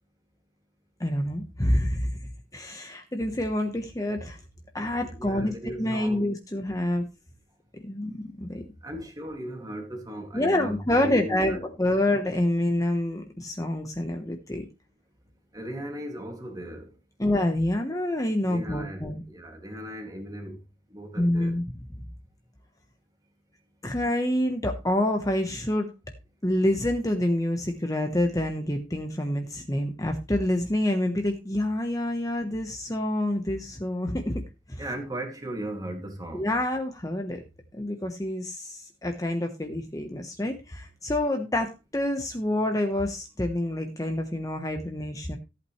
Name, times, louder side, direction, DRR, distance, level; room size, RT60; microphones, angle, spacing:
voice 1, 1.0-2.1 2.5-4.4 4.7-7.1 7.8-8.6 10.3-14.7 17.2-19.2 21.2-21.7 23.8-25.9 26.4-34.4 34.7-34.8 36.3-37.4 37.7-45.4, left 1 dB, 20° left, 1.1 m, -27 dB
voice 2, 5.0-6.3 8.8-11.7 15.5-16.9 18.4-20.6 20.9-21.6 34.8-36.5, right 1 dB, 20° right, 2.4 m, -37 dB
14.5 x 8.5 x 3.2 m
head